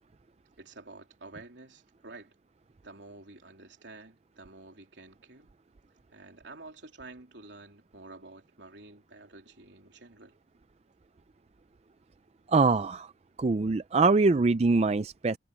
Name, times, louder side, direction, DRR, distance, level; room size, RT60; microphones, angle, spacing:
voice 1, 0.6-2.3 2.8-5.5 6.1-10.4, right 3 dB, 85° right, 3.3 m, -49 dB
voice 2, 12.5-13.1 13.4-15.4, right 3 dB, 35° right, 0.4 m, -23 dB
head